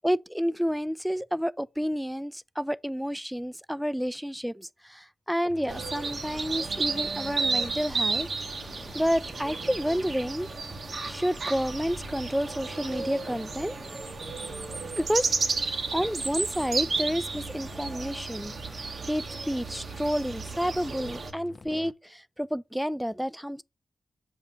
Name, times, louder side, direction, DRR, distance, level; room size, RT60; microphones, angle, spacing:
voice 1, 0.0-8.3 8.9-10.5 11.1-13.7 15.0-15.3 15.9-18.5 19.0-23.6, equal, ahead, 0.3 m, -30 dB
sound 1, 5.5-21.9, left 4 dB, 50° left, 0.5 m, -47 dB
sound 2, 5.7-21.3, right 4 dB, 65° right, 0.9 m, -33 dB
7.2 x 2.5 x 5.6 m
cardioid pair, 55°, 0 cm